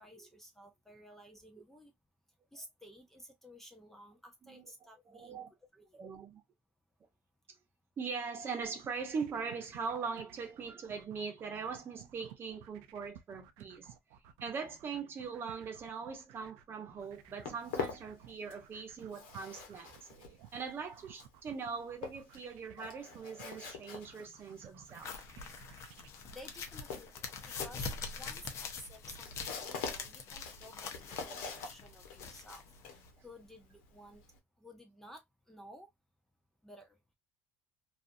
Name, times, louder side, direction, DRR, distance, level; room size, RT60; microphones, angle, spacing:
voice 1, 0.0-1.9 2.5-5.4 5.7-6.0 25.8-25.9 26.3-34.2 34.6-35.9 36.6-37.0, equal, 5° left, 0.6 m, -54 dB
voice 2, 5.1-5.5 5.9-6.4 8.0-13.9 14.4-20.1 20.5-25.1 25.4-25.6, right 5 dB, 35° right, 1.0 m, -41 dB
sound 1, 8.7-26.1, right 10 dB, 80° right, 0.4 m, -56 dB
Walk footsteps, 17.0-18.7 19.0-34.4, left 6 dB, 85° left, 1.0 m, -45 dB
sound 2, 24.9-33.1, left 5 dB, 50° left, 0.7 m, -44 dB
2.6 x 2.4 x 2.5 m
supercardioid pair, 100°, 6 cm